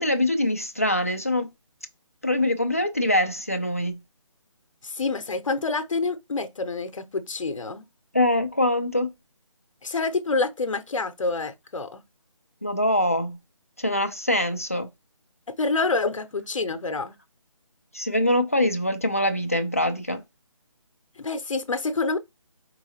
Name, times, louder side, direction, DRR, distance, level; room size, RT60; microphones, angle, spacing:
voice 1, 0.0-1.5 2.2-4.0 8.1-9.1 12.6-13.4 13.8-14.9 17.9-20.2, left 1 dB, 25° left, 0.3 m, -23 dB
voice 2, 4.8-7.9 9.8-12.0 15.6-17.1 21.2-22.2, left 3 dB, 70° left, 0.7 m, -27 dB
4.5 x 3.1 x 2.8 m
hypercardioid pair, 180°, 17 cm